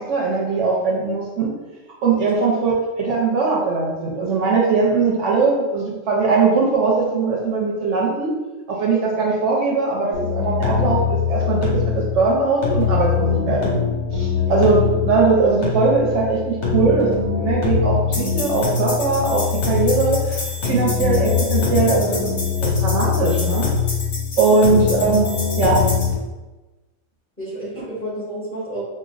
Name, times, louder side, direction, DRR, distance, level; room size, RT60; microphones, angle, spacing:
voice 1, 0.0-1.5 2.0-8.3 8.7-13.6 14.1-22.3 22.6-23.7 24.4-25.3 25.6-25.8 27.8-27.9, right 4 dB, 70° right, -2 dB, 0.9 m, -20 dB
sound 1, 10.1-26.1, left 6 dB, 60° left, 1.3 m, -22 dB
voice 2, 27.4-28.8, right 1 dB, 10° left, -9 dB, 1.5 m, -31 dB
5.0 x 2.5 x 2.4 m, 1.1 s
omnidirectional pair, 1.3 m